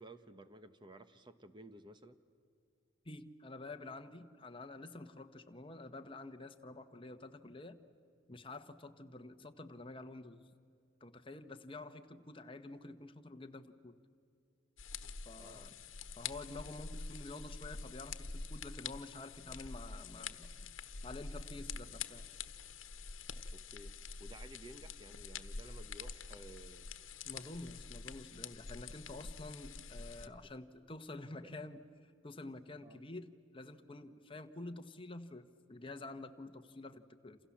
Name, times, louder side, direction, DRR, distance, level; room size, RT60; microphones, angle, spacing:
voice 1, 0.0-2.2 15.4-15.7 23.5-26.9 30.3-30.5 31.4-31.5 32.8-33.0, right 1 dB, 25° right, 10 dB, 1.0 m, -55 dB
voice 2, 3.0-7.8 8.3-10.4 11.0-13.9 15.2-15.7 16.2-20.7 21.0-22.3 27.2-31.8 32.2-37.4, left 2 dB, 25° left, 7 dB, 1.2 m, -49 dB
sound 1, 14.8-30.3, left 5 dB, 90° left, 1.2 m, -46 dB
28.5 x 28.0 x 7.3 m, 2.4 s
head